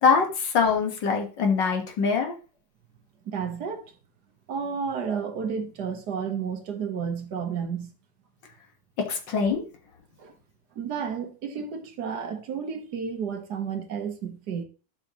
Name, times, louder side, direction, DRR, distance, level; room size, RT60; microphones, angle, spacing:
voice 1, 0.0-2.4 9.0-9.6, left 5 dB, 75° left, 2.1 m, -23 dB
voice 2, 3.2-3.9 4.5-7.9 10.2-10.3 10.7-14.6, right 6 dB, 65° right, 1.6 m, -31 dB
11.5 x 6.1 x 3.0 m
omnidirectional pair, 2.0 m